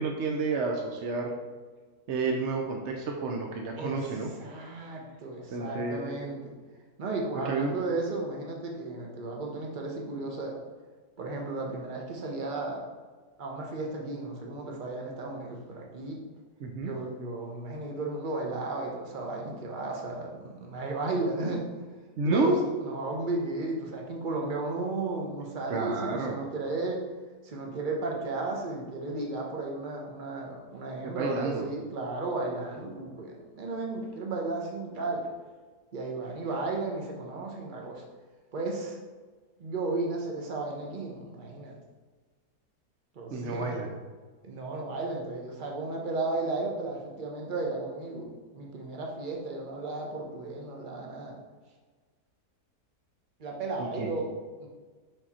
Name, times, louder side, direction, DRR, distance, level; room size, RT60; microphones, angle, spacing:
voice 1, 0.0-1.3 2.1-4.3 5.5-6.1 7.4-7.8 16.6-16.9 22.2-22.6 25.7-26.4 31.0-31.7 43.3-43.9 53.8-54.1, right 3 dB, 55° right, 1 dB, 0.9 m, -30 dB
voice 2, 3.8-6.5 7.0-10.6 11.2-12.8 13.4-16.2 16.8-21.7 22.2-27.0 27.4-35.3 35.9-38.0 38.5-39.0 39.6-41.8 43.1-43.8 44.4-48.3 48.5-51.4 53.4-54.3 54.6-54.7, right 2 dB, 35° right, 0 dB, 1.1 m, -34 dB
5.6 x 5.2 x 4.2 m, 1.4 s
omnidirectional pair, 1.6 m